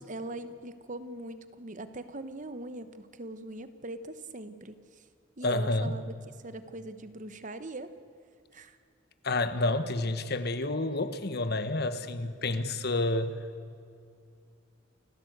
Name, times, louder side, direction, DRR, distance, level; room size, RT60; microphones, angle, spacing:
voice 1, 0.0-5.0 5.4-6.1 6.4-7.9 8.5-8.8, right 1 dB, 40° right, 11 dB, 1.0 m, -41 dB
voice 2, 5.4-5.9 9.2-13.3, left 2 dB, 55° left, 11 dB, 1.2 m, -29 dB
28.5 x 15.5 x 8.0 m, 2.4 s
head